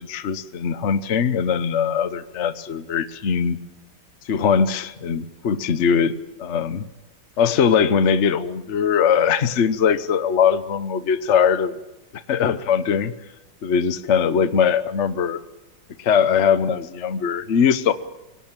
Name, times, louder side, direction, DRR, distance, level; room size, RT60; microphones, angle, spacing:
voice 1, 0.0-3.6 4.2-6.8 7.4-11.8 12.3-13.1 13.6-15.4 16.0-17.9, left 7 dB, 45° left, 12 dB, 1.2 m, -21 dB
25.0 x 18.0 x 8.9 m, 0.98 s
omnidirectional pair, 2.0 m